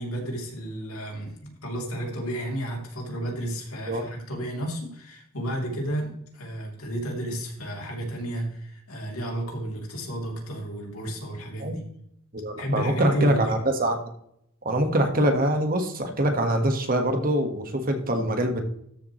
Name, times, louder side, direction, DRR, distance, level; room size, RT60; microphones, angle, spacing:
voice 1, 0.0-11.8 12.6-13.6, right 1 dB, 80° left, 0 dB, 3.2 m, -32 dB
voice 2, 12.3-14.1 14.6-18.6, right 1 dB, 40° right, 5 dB, 1.5 m, -24 dB
13.5 x 7.0 x 3.2 m, 0.72 s
head